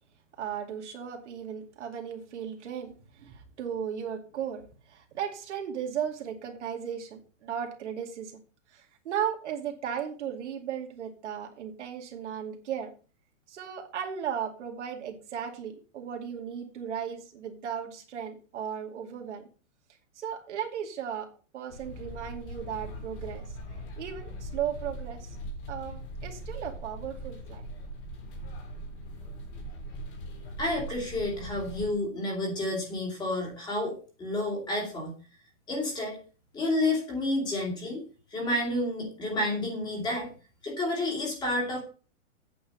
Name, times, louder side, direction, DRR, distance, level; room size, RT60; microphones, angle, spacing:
voice 1, 0.4-8.4 8.7-12.9 13.5-19.5 20.2-23.5 24.0-25.4 25.7-27.6, right 8 dB, 65° right, 3 dB, 2.4 m, -36 dB
sound 1, 21.7-31.9, right 1 dB, 40° left, 3.7 m, -40 dB
voice 2, 30.6-35.1 35.7-36.2 36.5-38.0 38.3-40.3 40.6-41.8, left 1 dB, 10° left, -1 dB, 2.7 m, -30 dB
8.8 x 6.2 x 7.2 m, 0.36 s
hypercardioid pair, 175°, 38 cm